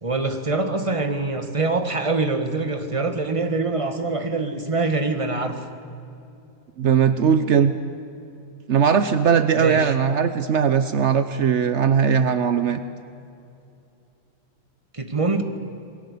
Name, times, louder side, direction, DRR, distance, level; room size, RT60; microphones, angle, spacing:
voice 1, 0.0-5.6 9.6-9.9 14.9-15.4, right 3 dB, 15° right, 6 dB, 1.6 m, -24 dB
voice 2, 6.8-7.8 8.7-12.8, right 7 dB, 70° right, 11 dB, 0.6 m, -19 dB
28.5 x 21.0 x 8.5 m, 2.7 s
omnidirectional pair, 2.4 m